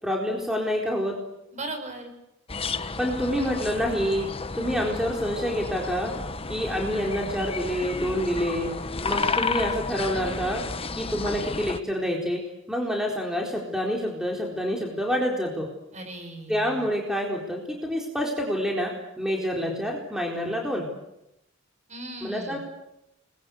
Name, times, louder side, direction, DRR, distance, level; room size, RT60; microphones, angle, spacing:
voice 1, 0.0-1.2 3.0-4.3 4.6-6.1 6.5-8.7 9.0-10.6 11.0-12.4 12.7-15.7 16.5-20.9 22.2-22.6, equal, 5° right, -1 dB, 4.2 m, -27 dB
voice 2, 1.5-2.1 15.9-16.8 21.9-22.6, right 2 dB, 35° right, 5 dB, 6.7 m, -37 dB
sound 1, 2.5-11.8, left 4 dB, 30° left, 1.2 m, -32 dB
30.0 x 22.0 x 8.1 m, 0.85 s
head